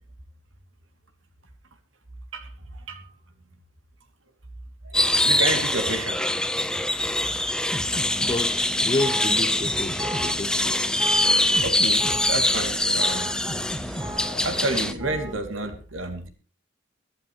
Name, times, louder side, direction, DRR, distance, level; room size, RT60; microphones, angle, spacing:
voice 1, 2.3-3.1 4.8-6.2 6.6-7.0 10.6-10.7 11.0-13.3 14.1-16.3, right 2 dB, 85° right, 2.8 m, -31 dB
sound 1, 4.9-14.9, left 1 dB, 5° left, 0.9 m, -24 dB
sound 2, 7.7-15.4, right 1 dB, 25° right, 1.6 m, -36 dB
voice 2, 8.2-10.8, left 2 dB, 25° left, 0.6 m, -30 dB
23.5 x 12.0 x 3.2 m
head